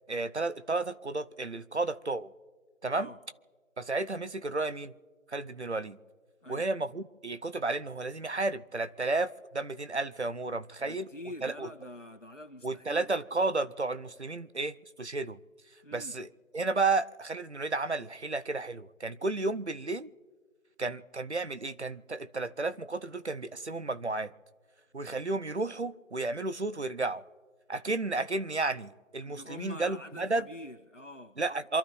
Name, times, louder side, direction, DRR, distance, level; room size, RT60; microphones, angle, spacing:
voice 1, 0.1-2.3 2.8-3.1 3.8-4.9 5.3-6.0 6.5-11.1 11.4-11.7 12.6-15.4 15.9-16.3 16.5-20.1 20.8-24.3 24.9-27.2 27.7-30.4 31.4-31.8, right 3 dB, 60° right, 0.8 m, -32 dB
voice 2, 10.8-13.1 15.8-16.2 29.2-31.4, left 1 dB, 70° left, 2.0 m, -46 dB
27.5 x 12.0 x 3.2 m
figure-of-eight pair, 175°, 38 cm